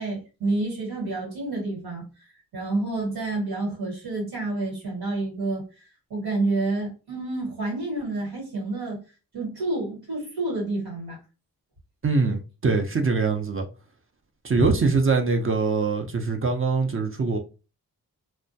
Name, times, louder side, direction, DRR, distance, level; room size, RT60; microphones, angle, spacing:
voice 1, 0.0-9.0 9.3-11.2 14.6-14.7, right 2 dB, 85° right, 1.3 m, -29 dB
voice 2, 12.0-13.7 14.4-17.4, right 4 dB, 35° right, 0.5 m, -23 dB
2.2 x 2.2 x 2.6 m
cardioid pair, 50°, 37 cm